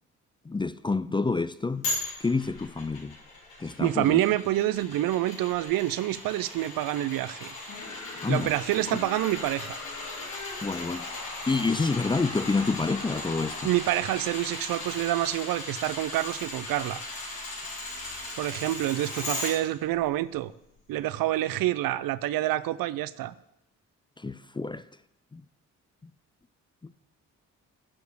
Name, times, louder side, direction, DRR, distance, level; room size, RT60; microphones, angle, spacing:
voice 1, 0.5-1.8 2.2-3.1 3.6-4.2 8.2-8.5 10.6-13.7 24.2-24.8 25.3-25.4 26.0-26.1 26.8-26.9, left 3 dB, 15° left, 0.4 m, -28 dB
sound 1, 1.8-19.5 19.9-20.0, left 2 dB, 90° left, 3.4 m, -38 dB
voice 2, 3.8-7.5 8.3-9.8 13.6-17.0 18.4-20.5 20.9-23.3, right 14 dB, 75° right, 0.5 m, -27 dB
sound 2, 6.1-15.0, left 4 dB, 55° left, 2.0 m, -43 dB
10.5 x 4.8 x 6.4 m
supercardioid pair, 50°, 35 cm